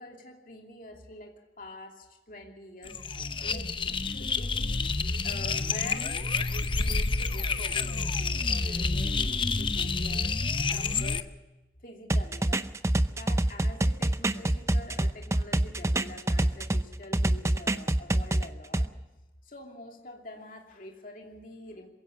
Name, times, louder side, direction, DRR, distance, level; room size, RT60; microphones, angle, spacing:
voice 1, 0.0-4.8 5.2-10.3 10.7-11.3 11.8-12.7 13.1-18.9 19.4-21.9, left 1 dB, 50° left, 1 dB, 2.7 m, -46 dB
sound 1, 2.8-11.2, left 4 dB, 30° left, 0.7 m, -29 dB
sound 2, 12.1-16.8 17.1-18.9, right 1 dB, 15° right, 0.6 m, -26 dB
22.0 x 16.0 x 7.3 m, 1.0 s
head